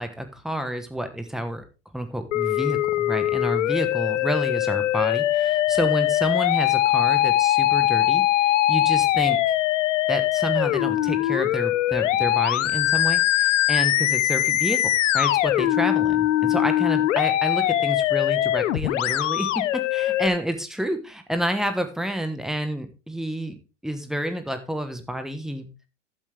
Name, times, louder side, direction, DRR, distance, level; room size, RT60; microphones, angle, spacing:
voice 1, 0.0-1.6 1.9-9.5 10.1-14.8 15.1-23.6 23.8-25.7, right 1 dB, ahead, 8 dB, 1.1 m, -29 dB
Musical instrument, 2.3-20.3, left 14 dB, 80° left, 0.8 m, -22 dB
12.5 x 7.7 x 3.4 m, 0.31 s
supercardioid pair, 135°, 37 cm